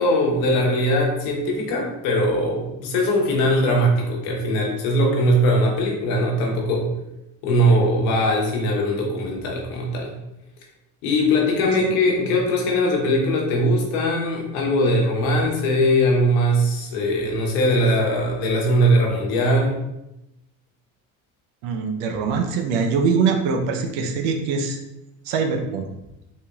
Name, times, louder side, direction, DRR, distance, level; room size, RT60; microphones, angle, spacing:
voice 1, 0.0-6.9 7.4-10.1 11.0-19.8, equal, 85° left, -1 dB, 1.1 m, -20 dB
voice 2, 21.6-24.8 25.2-25.9, right 5 dB, 85° right, 4 dB, 0.7 m, -23 dB
4.2 x 3.6 x 2.4 m, 0.89 s
supercardioid pair, 70°, 40 cm